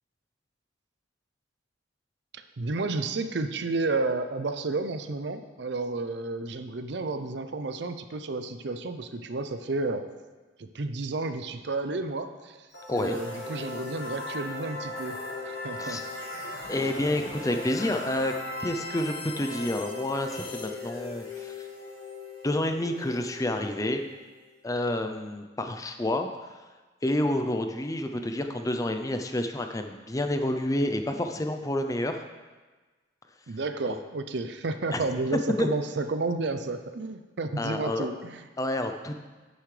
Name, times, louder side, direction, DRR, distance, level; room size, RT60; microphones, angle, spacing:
voice 1, 2.3-10.0 10.6-12.6 12.9-15.2 15.5-16.0 33.5-38.4, right 3 dB, 60° right, 9 dB, 0.6 m, -31 dB
sound 1, 12.7-24.5, left 2 dB, 85° left, 3.4 m, -38 dB
voice 2, 16.7-18.3 18.6-21.7 22.4-24.0 24.6-26.5 27.0-32.2 33.9-34.0 34.9-35.0 35.6-35.7 37.6-38.1 38.6-39.2, left 1 dB, 15° left, 6 dB, 0.5 m, -29 dB
10.0 x 9.4 x 3.3 m, 1.3 s
head